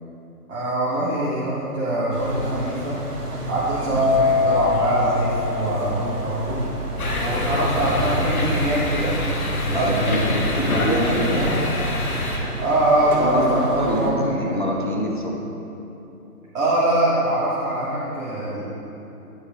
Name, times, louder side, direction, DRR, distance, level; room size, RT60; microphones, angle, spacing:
voice 1, 0.5-3.0 3.5-6.6 7.2-9.3 9.6-10.7 11.2-11.5 12.6-14.6 16.5-18.6, right 1 dB, 55° right, -9 dB, 1.5 m, -23 dB
sound 1, 2.1-14.1, right 1 dB, 80° right, 1.2 m, -32 dB
sound 2, 4.0-11.5 11.8-12.3, left 4 dB, 40° right, 0.6 m, -25 dB
sound 3, 7.0-12.4, left 1 dB, 65° left, 1.0 m, -26 dB
voice 2, 9.7-11.5 13.1-15.4, equal, 35° left, -1 dB, 0.5 m, -25 dB
9.3 x 4.3 x 3.0 m, 3.0 s
figure-of-eight pair, 160°, 46 cm